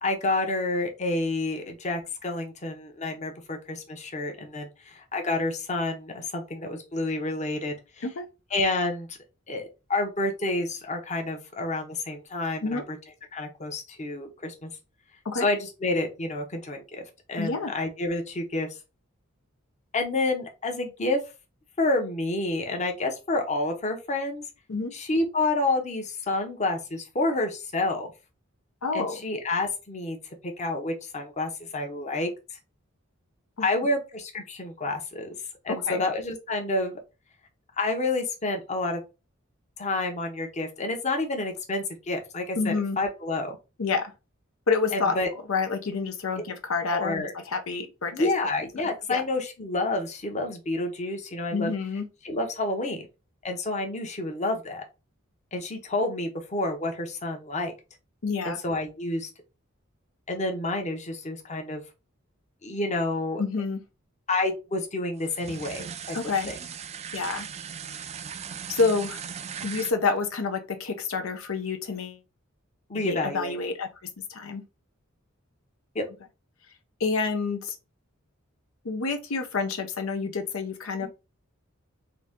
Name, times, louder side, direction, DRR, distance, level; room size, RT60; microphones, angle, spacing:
voice 1, 0.0-8.0 8.5-9.1 9.5-13.0 13.3-14.7 15.3-17.0 17.3-18.7 19.9-21.2 21.8-24.4 24.9-28.1 28.9-30.2 30.4-32.3 33.6-35.3 35.6-36.9 37.8-39.0 39.8-43.5 44.9-45.3 46.9-47.3 48.1-51.7 52.2-53.0 53.4-54.8 55.5-57.7 58.4-59.3 60.3-61.8 62.6-63.4 64.3-66.2 66.5-66.6 72.9-73.6 75.9-76.0 81.0-81.1, left 2 dB, 35° left, 0.9 m, -29 dB
voice 2, 17.4-17.7 24.7-24.9 28.8-29.2 33.6-33.7 35.7-36.0 42.6-43.0 43.8-44.1 44.7-45.2 45.5-48.3 49.1-49.2 51.5-52.1 58.2-58.6 63.4-63.8 66.1-66.5 67.1-67.5 68.7-69.2 69.6-72.2 72.9-73.9 74.3-74.6 77.0-77.8 78.8-81.1, left 4 dB, 90° left, 0.7 m, -28 dB
sound 1, 65.2-69.9, right 7 dB, 30° right, 0.4 m, -38 dB
3.9 x 2.7 x 3.5 m
head